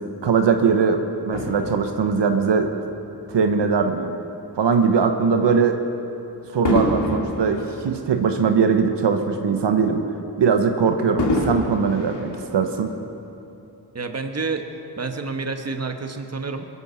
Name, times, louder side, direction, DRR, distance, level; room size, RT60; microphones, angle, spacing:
voice 1, 0.2-2.7 3.3-4.1 4.6-5.8 6.5-10.0 10.4-12.9, right 5 dB, 80° right, 5 dB, 1.0 m, -20 dB
Fireworks, 1.3-3.9 4.6-4.8 6.6-9.2 9.5-9.6 11.2-13.1 13.8-13.9, left 1 dB, 75° left, 2.5 m, -28 dB
voice 2, 13.9-14.7 15.0-16.6, right 4 dB, 35° right, 5 dB, 1.3 m, -28 dB
22.0 x 8.4 x 7.0 m, 2.8 s
cardioid pair, 60°, 42 cm